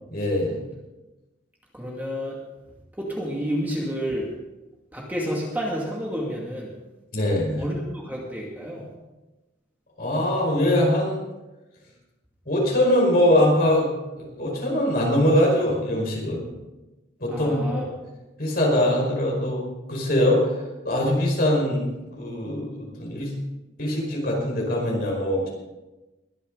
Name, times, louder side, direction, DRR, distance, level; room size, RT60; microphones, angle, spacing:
voice 1, 0.1-0.6 7.1-7.7 10.0-11.2 12.5-13.9 14.1-16.5 17.2-17.8 18.4-20.5 20.8-23.3 23.8-25.5, left 1 dB, 50° left, -2 dB, 5.1 m, -22 dB
voice 2, 1.8-2.4 3.0-4.3 4.9-6.7 7.6-7.8 8.0-8.8 17.3-17.8, equal, 10° right, -3 dB, 2.3 m, -29 dB
22.0 x 10.0 x 4.0 m, 1.1 s
head